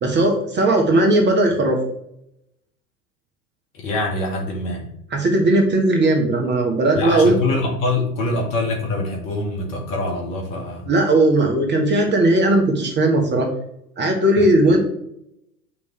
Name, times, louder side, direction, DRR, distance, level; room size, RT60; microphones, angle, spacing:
voice 1, 0.0-1.8 5.1-7.3 10.9-13.5 14.0-14.8, right 1 dB, 20° right, 2 dB, 1.5 m, -17 dB
voice 2, 3.7-4.9 6.9-10.9 14.4-14.5, left 2 dB, 40° left, 1 dB, 2.1 m, -24 dB
8.7 x 5.2 x 3.2 m, 0.77 s
figure-of-eight pair, 90°, 48 cm